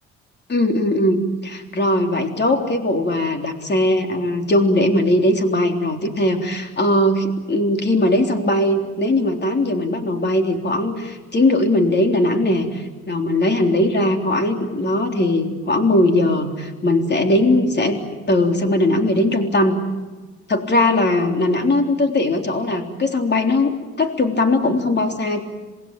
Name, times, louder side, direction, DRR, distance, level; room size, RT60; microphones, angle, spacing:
voice 1, 0.5-18.0 18.3-19.7 20.5-25.4, left 1 dB, 35° left, 4 dB, 3.7 m, -19 dB
27.0 x 21.0 x 9.0 m, 1.3 s
cardioid pair, 90°, 30 cm